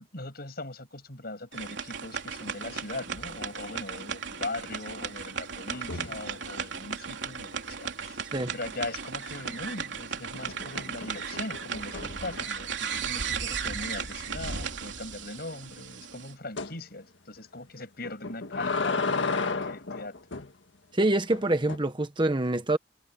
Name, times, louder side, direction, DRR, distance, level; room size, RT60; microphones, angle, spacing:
voice 1, 0.0-8.2 8.5-20.2, left 2 dB, 55° left, 7.6 m, -40 dB
sound 1, 1.5-16.3, right 6 dB, 75° right, 3.4 m, -36 dB
sound 2, 2.1-2.8 3.0-3.4 5.7-6.3 9.4-9.9 10.3-12.7 13.2-13.3 13.6-13.7 14.1-14.2 16.6-16.8 18.0-20.5 21.3-21.8, left 4 dB, 80° left, 1.7 m, -34 dB
voice 2, 20.9-22.8, right 2 dB, 25° right, 1.3 m, -25 dB
head